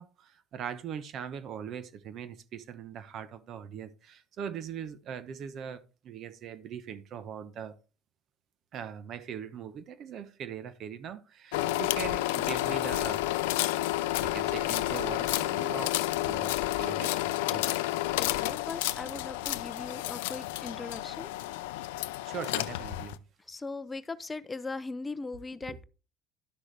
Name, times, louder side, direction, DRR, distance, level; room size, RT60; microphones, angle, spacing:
voice 1, 0.0-7.7 8.7-13.3 14.2-17.6 22.2-23.2 25.7-25.8, right 8 dB, 55° right, 1.0 m, -41 dB
sound 1, 11.5-23.2, left 16 dB, 90° left, 0.4 m, -30 dB
voice 2, 18.2-21.3 23.5-25.8, left 3 dB, 20° left, 0.5 m, -39 dB
11.5 x 6.2 x 3.4 m
supercardioid pair, 90°, 0 cm